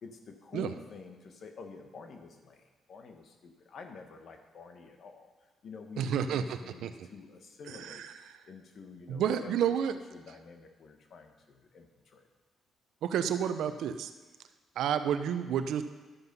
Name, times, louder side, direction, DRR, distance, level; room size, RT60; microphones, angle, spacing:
voice 1, 0.0-5.3 5.6-8.0 8.5-12.2, left 4 dB, 60° left, 5 dB, 1.4 m, -49 dB
voice 2, 6.0-7.1 7.7-8.4 9.1-9.9 13.0-14.1 14.8-15.8, right 8 dB, 80° right, 10 dB, 0.7 m, -31 dB
11.0 x 8.2 x 5.4 m, 1.3 s
cardioid pair, 90°, 0 cm